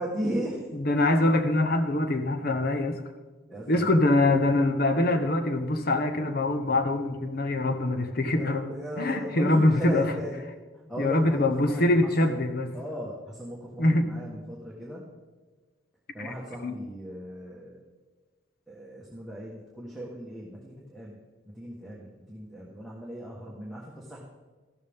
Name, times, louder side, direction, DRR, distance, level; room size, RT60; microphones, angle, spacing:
voice 1, 0.0-0.6 3.5-4.0 8.4-10.4 10.7-12.4 12.7-15.0 16.1-17.8 18.7-21.2 21.5-24.2, right 1 dB, ahead, -5 dB, 1.4 m, -37 dB
voice 2, 0.7-3.0 3.7-8.6 9.0-10.1 11.0-12.7 13.8-14.1 16.2-16.8, left 2 dB, 50° left, 8 dB, 1.0 m, -24 dB
14.5 x 12.5 x 3.6 m, 1.3 s
head